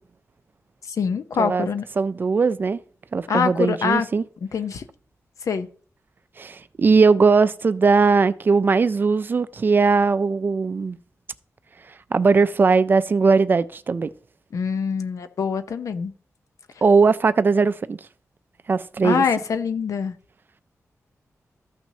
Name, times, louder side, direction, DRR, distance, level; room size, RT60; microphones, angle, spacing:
voice 1, 0.8-1.8 3.3-4.1 4.4-4.8 5.4-5.7 14.5-16.1 19.0-20.1, left 6 dB, 80° left, 0.7 m, -24 dB
voice 2, 2.0-2.8 3.1-4.2 6.4-11.0 12.1-14.1 16.8-18.0 18.7-19.2, right 4 dB, 40° right, 0.4 m, -19 dB
14.0 x 6.0 x 2.8 m
wide cardioid pair, 145°, 5 cm